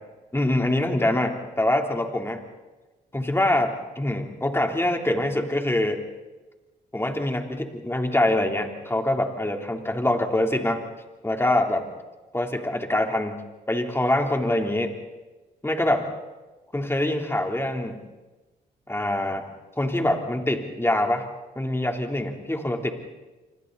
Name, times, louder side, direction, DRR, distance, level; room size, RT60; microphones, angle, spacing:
voice 1, 0.3-2.4 3.1-6.0 6.9-10.9 11.2-11.9 12.3-13.4 13.7-15.0 15.6-16.1 16.7-18.0 18.9-19.5 19.8-21.3 21.6-22.9, left 1 dB, 15° left, 3 dB, 3.5 m, -24 dB
27.5 x 25.0 x 4.1 m, 1.2 s
supercardioid pair, 65°, 18 cm